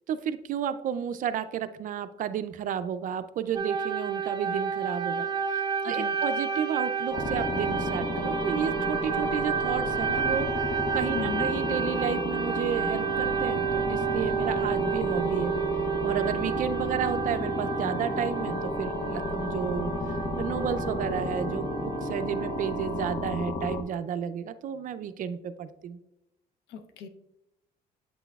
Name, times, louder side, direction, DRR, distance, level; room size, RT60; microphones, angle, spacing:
voice 1, 0.1-15.5 16.0-19.9 20.4-26.0, right 8 dB, 50° right, 11 dB, 0.4 m, -32 dB
sound 1, 3.5-23.1, right 7 dB, 25° right, 0.8 m, -31 dB
voice 2, 5.8-6.1 11.1-11.5 26.7-27.1, left 6 dB, 85° left, 8 dB, 0.7 m, -36 dB
sound 2, 7.1-23.8, left 2 dB, 35° left, 0.7 m, -32 dB
8.2 x 6.0 x 2.3 m, 0.87 s
cardioid pair, 110°, 17 cm